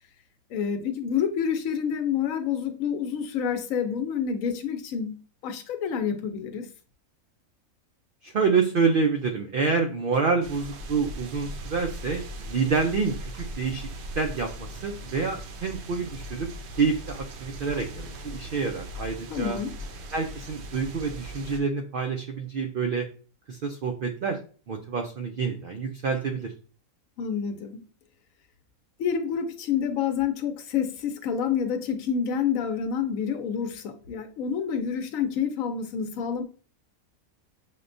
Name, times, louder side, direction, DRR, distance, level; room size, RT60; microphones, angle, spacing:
voice 1, 0.5-5.2 5.4-6.7 19.3-19.8 27.2-27.8 29.0-36.4, left 7 dB, 75° left, 1.0 m, -28 dB
voice 2, 8.2-16.5 16.8-19.6 20.1-23.1 23.5-24.4 24.7-26.5, right 5 dB, 90° right, 0.4 m, -27 dB
sound 1, 10.4-21.6, equal, 60° right, 0.7 m, -39 dB
6.5 x 2.2 x 2.5 m
omnidirectional pair, 1.5 m